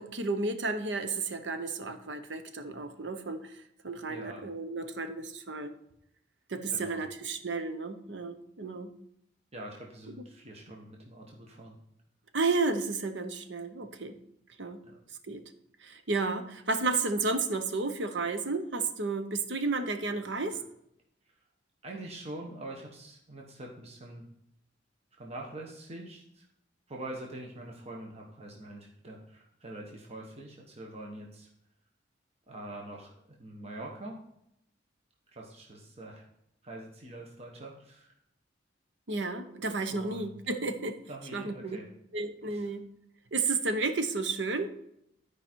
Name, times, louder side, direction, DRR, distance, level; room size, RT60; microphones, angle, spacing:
voice 1, 0.0-3.4 3.8-5.8 6.5-8.9 12.3-14.2 14.6-14.8 15.3-15.4 15.8-20.6 39.1-41.0 41.3-41.8 42.1-42.9 43.3-44.8, right 3 dB, 65° right, 9 dB, 0.9 m, -32 dB
voice 2, 4.1-4.4 6.7-7.0 9.5-11.7 14.8-15.0 21.3-21.4 21.8-24.2 25.1-26.5 26.9-31.5 32.5-33.1 33.4-34.2 35.3-36.2 36.6-38.1 39.9-40.4 41.1-41.9 42.4-42.7, right 1 dB, 35° right, -1 dB, 1.2 m, -44 dB
12.0 x 4.9 x 4.5 m, 0.77 s
head